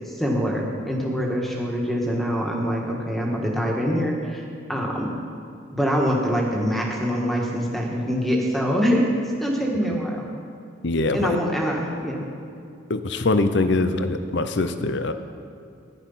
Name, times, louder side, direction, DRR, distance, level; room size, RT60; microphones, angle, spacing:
voice 1, 0.1-5.1 5.7-9.1 9.4-10.3 11.1-12.2, equal, ahead, -2 dB, 1.7 m, -24 dB
voice 2, 10.8-11.4 12.9-15.1, left 2 dB, 55° left, 9 dB, 0.6 m, -23 dB
15.0 x 11.5 x 5.8 m, 2.4 s
head